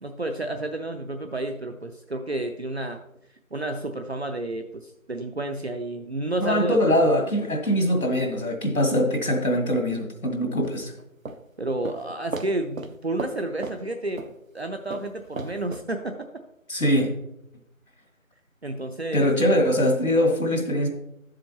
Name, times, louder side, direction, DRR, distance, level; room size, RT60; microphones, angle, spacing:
voice 1, 0.0-3.0 3.5-7.3 11.6-14.2 14.5-16.2 18.6-19.6, right 2 dB, 50° right, 5 dB, 0.6 m, -30 dB
voice 2, 6.4-10.9 16.7-17.1 19.1-20.9, equal, 85° left, 3 dB, 2.1 m, -22 dB
sound 1, 10.6-11.4 11.9-12.0 12.3-12.5 12.8-12.9 13.2-13.4 13.6-13.8 14.2-14.3 14.9-15.8, right 3 dB, 75° right, 0.9 m, -34 dB
11.5 x 7.5 x 2.9 m, 0.81 s
figure-of-eight pair, 165°, 41 cm